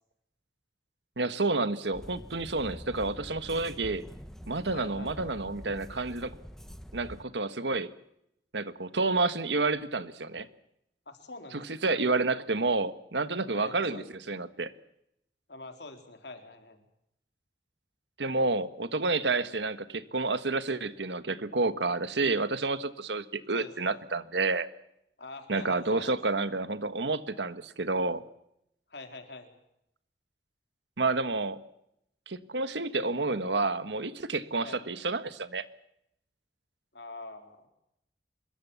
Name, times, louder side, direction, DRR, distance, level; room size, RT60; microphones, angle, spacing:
voice 1, 1.2-4.1 4.5-6.4 6.9-7.9 8.5-10.5 11.5-14.7 18.2-24.7 25.5-28.2 31.0-31.6 32.3-35.6, right 3 dB, 85° right, 13 dB, 1.5 m, -29 dB
sound 1, 1.9-7.2, equal, 5° left, 1.3 m, -46 dB
voice 2, 4.7-5.3 11.1-11.9 13.5-14.1 15.5-16.8 23.5-24.0 25.2-26.2 28.9-29.5 34.6-34.8 36.9-37.7, left 2 dB, 75° left, 5 dB, 4.0 m, -45 dB
25.5 x 22.0 x 7.2 m, 0.79 s
head